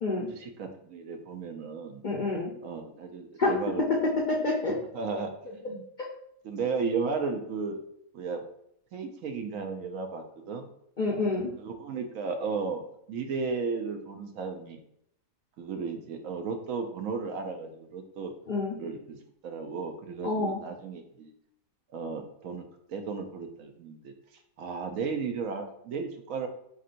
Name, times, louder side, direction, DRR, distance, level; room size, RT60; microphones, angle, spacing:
voice 1, 0.3-2.0 2.6-3.8 4.9-5.8 6.4-7.8 8.1-8.4 8.9-10.7 11.6-12.8 13.1-14.8 15.6-18.3 18.8-19.2 19.4-21.3 21.9-22.6 22.9-24.1 24.6-26.5, right 4 dB, 75° right, 5 dB, 1.0 m, -34 dB
voice 2, 2.0-2.5 3.4-3.6 3.9-4.8 11.0-11.5 18.5-18.7 20.2-20.6, left 3 dB, 50° left, -2 dB, 0.6 m, -27 dB
4.2 x 3.6 x 2.5 m, 0.73 s
omnidirectional pair, 1.4 m